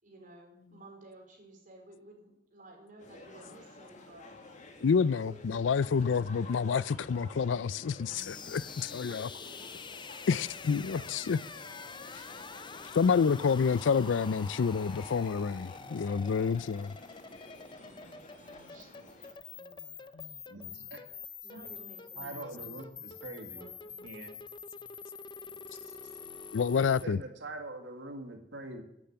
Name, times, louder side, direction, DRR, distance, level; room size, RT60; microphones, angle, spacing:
voice 1, 0.0-4.3 5.0-5.9 8.8-9.6 10.1-11.7 13.1-13.4 17.7-19.1 19.4-20.3 21.4-22.9 23.5-23.9, right 2 dB, 45° right, 4.6 m, -54 dB
sound 1, 3.0-19.3, left 2 dB, 40° left, 2.0 m, -51 dB
voice 2, 4.8-9.3 10.3-11.4 12.9-16.9 20.1-20.4 26.5-27.2, left 6 dB, 85° left, 0.4 m, -28 dB
sound 2, 8.1-27.0, left 5 dB, 25° left, 0.6 m, -46 dB
voice 3, 20.5-21.0 22.2-22.9 23.2-23.6 24.0-24.4 25.5-25.6 25.8-25.9 27.0-28.8, right 2 dB, 70° right, 2.1 m, -43 dB
11.5 x 10.5 x 8.8 m
head